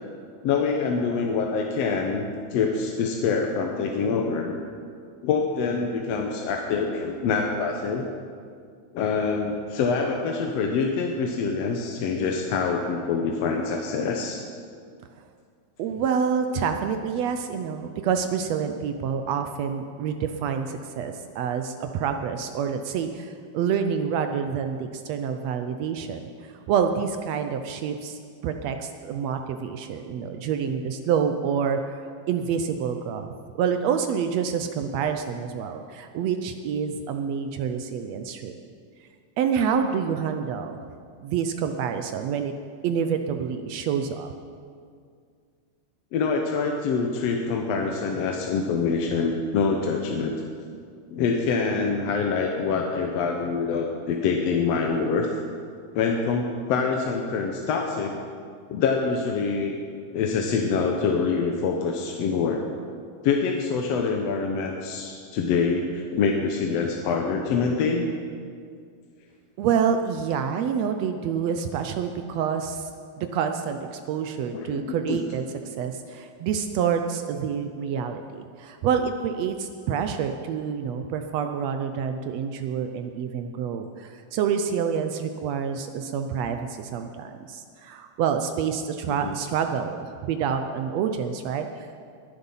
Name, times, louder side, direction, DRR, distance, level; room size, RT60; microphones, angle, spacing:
voice 1, 0.4-4.6 5.2-8.1 8.9-14.4 46.1-50.3 51.1-55.3 55.9-58.2 58.7-59.8 60.1-62.6 63.2-68.1 74.5-74.8 75.1-75.2 89.1-89.4, left 5 dB, 70° left, 2 dB, 1.8 m, -25 dB
voice 2, 15.8-38.6 39.4-40.8 41.2-42.5 42.8-44.3 69.6-72.9 73.2-75.4 75.8-91.9, right 7 dB, 75° right, 7 dB, 1.7 m, -27 dB
21.5 x 7.9 x 5.6 m, 2.2 s
omnidirectional pair, 3.4 m